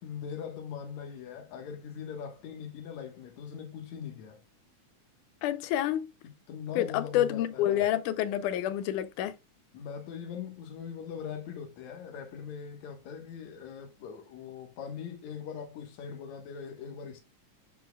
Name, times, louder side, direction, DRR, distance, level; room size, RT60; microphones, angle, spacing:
voice 1, 0.0-4.4 6.2-7.9 9.7-17.2, left 7 dB, 70° left, 2.6 m, -41 dB
voice 2, 5.4-6.1 6.8-9.3, left 12 dB, 90° left, 2.2 m, -28 dB
10.0 x 4.4 x 2.3 m
omnidirectional pair, 3.5 m